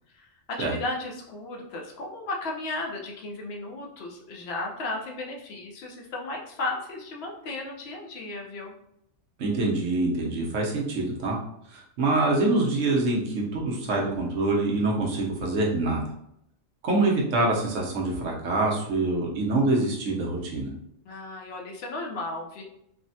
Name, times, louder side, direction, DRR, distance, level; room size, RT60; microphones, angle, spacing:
voice 1, 0.1-8.7 21.0-22.6, left 2 dB, 60° left, 0 dB, 0.8 m, -35 dB
voice 2, 9.4-11.4 11.7-16.0 16.8-20.7, right 2 dB, 75° right, -2 dB, 1.1 m, -25 dB
3.3 x 2.1 x 2.6 m, 0.75 s
omnidirectional pair, 1.3 m